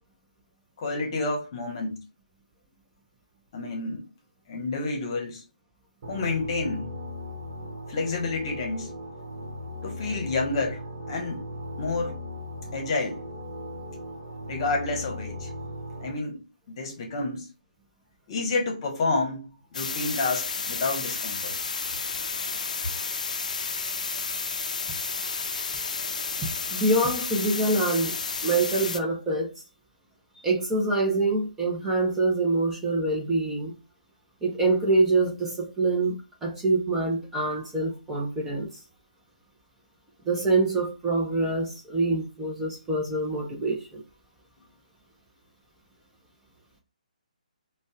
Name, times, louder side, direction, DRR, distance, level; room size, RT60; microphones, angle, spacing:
voice 1, 0.8-2.1 3.5-4.1 4.5-5.4 6.1-6.9 7.9-8.9 9.8-11.5 11.8-12.2 12.7-13.2 14.5-15.5 16.0-17.5 18.3-21.5, left 3 dB, 40° left, 1.0 m, -29 dB
sound 1, 6.0-16.1, left 1 dB, 35° right, 0.9 m, -38 dB
sound 2, 19.7-29.0, left 4 dB, 60° left, 0.5 m, -31 dB
voice 2, 26.4-28.2 28.4-29.5 30.4-33.8 34.4-38.7 40.2-44.0, right 2 dB, 10° right, 0.7 m, -25 dB
5.1 x 2.3 x 2.3 m
figure-of-eight pair, 140°, 4 cm